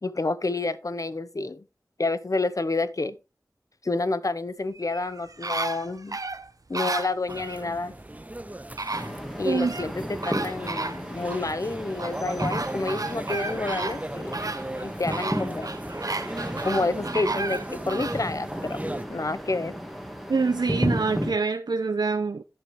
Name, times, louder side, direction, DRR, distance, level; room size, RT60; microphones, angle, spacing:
voice 1, 0.0-1.6 2.0-3.2 3.8-6.2 6.7-7.9 9.4-14.4 14.8-15.7 16.6-18.8 19.1-19.7, left 3 dB, 50° left, 0.8 m, -29 dB
sound 1, 4.8-7.6 8.4-8.5 8.8-9.9 10.2-11.4 12.0-18.2 18.7-18.8, right 3 dB, 55° right, 1.0 m, -33 dB
sound 2, 7.3-19.0, right 1 dB, 20° right, 0.7 m, -38 dB
sound 3, 8.9-21.3, equal, ahead, 2.2 m, -34 dB
voice 2, 9.4-9.8 20.3-22.4, right 4 dB, 80° right, 0.6 m, -25 dB
11.0 x 7.6 x 3.3 m
wide cardioid pair, 45°, 7 cm